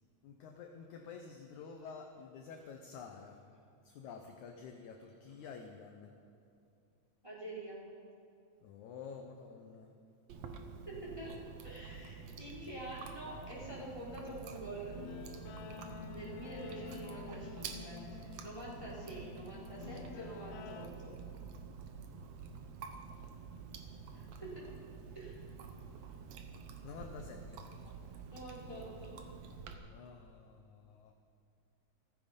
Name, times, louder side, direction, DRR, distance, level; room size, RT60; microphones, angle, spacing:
voice 1, 0.2-3.4 3.8-6.2 8.6-9.9 26.8-27.7 29.8-31.1, left 6 dB, 70° left, 4 dB, 1.9 m, -50 dB
voice 2, 7.2-7.8 10.8-11.3 11.6-15.0 16.0-21.2 24.1-24.6 25.1-25.4 27.8-27.9 28.3-29.2, right 1 dB, 10° right, -6 dB, 4.2 m, -46 dB
Chewing mastication, 10.3-29.7, right 6 dB, 75° right, 1.5 m, -49 dB
Guitar, 14.9-20.9, left 8 dB, 85° left, 2.8 m, -49 dB
15.5 x 14.5 x 5.3 m, 2.6 s
omnidirectional pair, 4.4 m